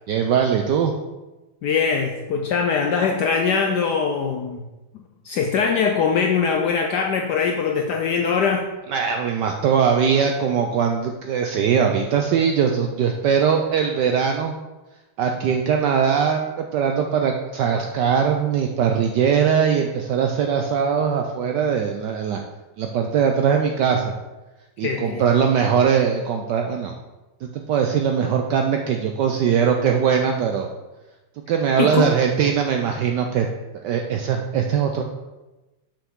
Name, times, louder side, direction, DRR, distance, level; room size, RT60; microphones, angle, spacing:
voice 1, 0.1-0.9 8.9-14.5 15.2-22.4 22.8-24.1 24.8-26.9 27.5-30.7 31.5-33.5 33.8-35.0, right 7 dB, 75° right, 3 dB, 1.0 m, -21 dB
voice 2, 1.6-4.6 5.2-8.6 24.8-25.4 31.8-32.1, left 5 dB, 75° left, 2 dB, 0.9 m, -22 dB
7.0 x 5.7 x 3.6 m, 1.1 s
omnidirectional pair, 2.3 m